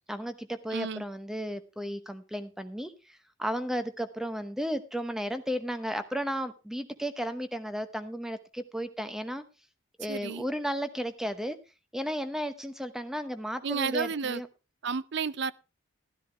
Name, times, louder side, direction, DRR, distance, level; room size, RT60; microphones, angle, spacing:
voice 1, 0.1-9.4 10.0-11.6 11.9-14.5, equal, ahead, 0.9 m, -34 dB
voice 2, 0.7-1.0 10.1-10.5 13.6-14.4 14.8-15.5, right 5 dB, 55° right, 0.5 m, -31 dB
13.0 x 12.5 x 3.4 m
head